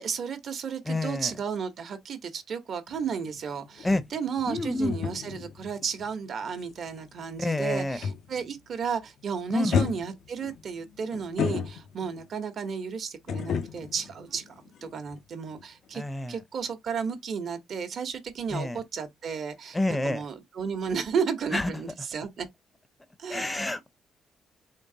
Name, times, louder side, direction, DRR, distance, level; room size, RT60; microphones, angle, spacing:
voice 1, 0.0-16.0 16.3-22.5 23.2-23.6, right 6 dB, 60° right, 1.0 m, -33 dB
voice 2, 0.8-1.3 3.8-4.0 4.5-4.9 7.4-8.0 9.5-9.7 15.9-16.4 18.5-18.8 19.7-20.2 21.5-21.7 23.3-23.9, left 2 dB, 15° left, 0.6 m, -28 dB
sound 1, 2.9-8.6 8.9-9.2 9.7-12.2 13.3-15.2 15.5-15.6, left 6 dB, 65° left, 0.5 m, -33 dB
3.8 x 3.3 x 2.7 m
cardioid pair, 90°, 0 cm